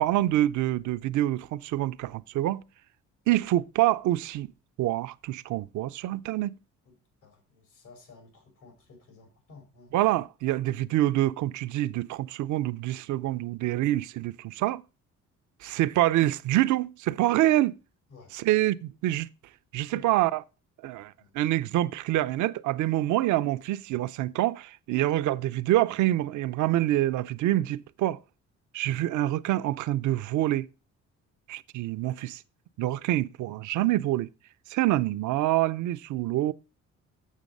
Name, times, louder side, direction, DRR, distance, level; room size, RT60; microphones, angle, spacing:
voice 1, 0.0-2.6 3.3-4.5 4.8-6.6 9.9-14.8 15.6-17.8 18.3-19.3 19.7-20.4 20.8-28.2 28.7-30.7 31.5-32.4 32.8-34.3 34.7-36.5, right 15 dB, 75° right, 0.5 m, -26 dB
voice 2, 7.2-9.9 18.1-18.3 19.9-20.0 21.2-21.4, left 3 dB, 90° left, 3.8 m, -52 dB
7.4 x 6.4 x 5.2 m
cardioid pair, 90°, 30 cm